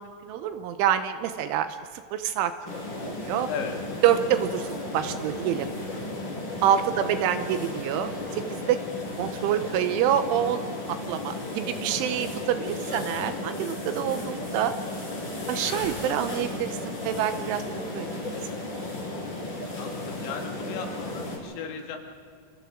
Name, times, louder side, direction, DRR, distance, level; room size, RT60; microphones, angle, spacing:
voice 1, 0.0-1.8 2.1-2.7 3.1-3.5 4.0-5.7 6.6-8.8 9.2-14.7 15.5-17.6 17.9-18.3, right 10 dB, 80° right, 10 dB, 3.1 m, -27 dB
sound 1, 2.6-21.4, left 2 dB, 25° left, 4.8 m, -34 dB
voice 2, 12.9-13.3 19.8-22.0, left 6 dB, 80° left, 3 dB, 4.2 m, -36 dB
28.0 x 27.0 x 3.8 m, 2.2 s
omnidirectional pair, 5.9 m